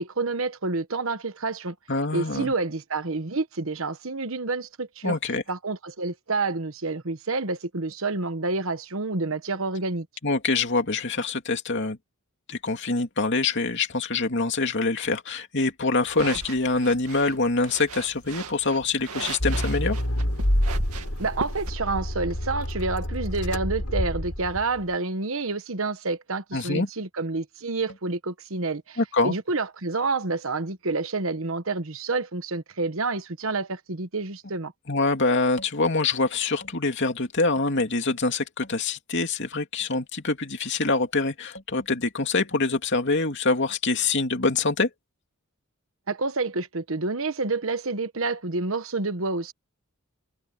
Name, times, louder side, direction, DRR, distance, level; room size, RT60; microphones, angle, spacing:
voice 1, 0.0-1.7 2.1-5.2 5.5-10.1 21.2-29.0 29.2-34.7 46.1-49.5, right 3 dB, 65° right, 1.3 m, -28 dB
voice 2, 1.9-2.5 5.0-5.4 10.2-12.0 12.5-20.0 26.5-26.9 29.0-29.3 34.9-44.9, left 3 dB, 55° left, 2.8 m, -25 dB
sound 1, 16.0-21.7, right 4 dB, 85° right, 2.3 m, -39 dB
Accelerating revving vroom, 19.4-24.8, equal, 75° left, 5.2 m, -27 dB
head